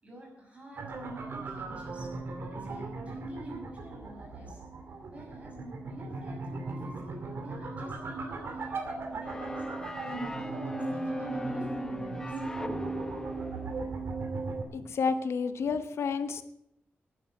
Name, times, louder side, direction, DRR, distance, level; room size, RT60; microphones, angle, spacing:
voice 1, 0.0-0.9 1.2-2.1 2.6-4.6 5.1-5.6 5.8-12.4, right 1 dB, 30° right, -1 dB, 6.1 m, -49 dB
sound 1, 0.8-14.6, right 3 dB, 65° right, 2.5 m, -38 dB
sound 2, 9.2-14.0, left 1 dB, 15° left, 0.8 m, -38 dB
voice 2, 14.7-16.4, left 5 dB, 85° left, 10 dB, 1.0 m, -30 dB
11.5 x 9.7 x 8.4 m, 0.78 s
wide cardioid pair, 180°, 4 cm